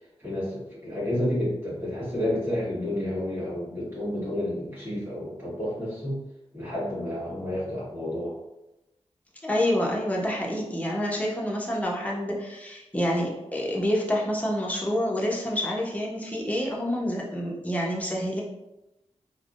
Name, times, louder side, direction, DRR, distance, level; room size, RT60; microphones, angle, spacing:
voice 1, 0.2-6.2 6.5-8.3, left 1 dB, 20° right, -11 dB, 1.4 m, -30 dB
voice 2, 9.4-18.4, equal, 10° left, -3 dB, 0.7 m, -27 dB
3.3 x 2.1 x 2.4 m, 0.94 s
wide cardioid pair, 65°, 12 cm